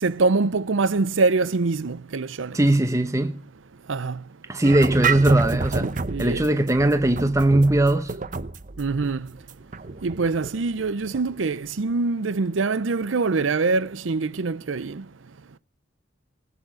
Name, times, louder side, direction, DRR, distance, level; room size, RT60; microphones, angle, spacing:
voice 1, 0.0-2.6 3.9-4.2 6.1-6.4 8.8-9.3 10.0-15.0, right 3 dB, 85° right, 0.6 m, -24 dB
voice 2, 2.5-3.4 4.5-5.9 6.2-8.1, right 1 dB, 15° right, 0.9 m, -19 dB
sound 1, 4.6-11.4, right 4 dB, 45° right, 0.9 m, -30 dB
19.5 x 8.3 x 6.3 m
head